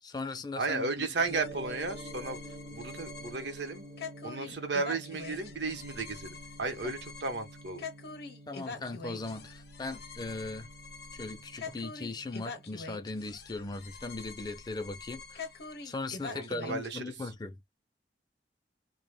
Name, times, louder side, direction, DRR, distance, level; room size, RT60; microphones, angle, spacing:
voice 1, 0.0-1.1 6.8-6.9 8.5-10.7 11.1-15.5 15.8-17.6, left 3 dB, 25° left, 0.4 m, -39 dB
voice 2, 0.6-2.4 2.7-3.9 4.2-7.8 16.3-17.3, right 3 dB, 75° right, 0.7 m, -34 dB
sound 1, 1.2-16.9, left 4 dB, 60° left, 0.7 m, -45 dB
Gong, 1.3-15.4, right 2 dB, 30° right, 0.5 m, -49 dB
2.1 x 2.0 x 3.1 m
head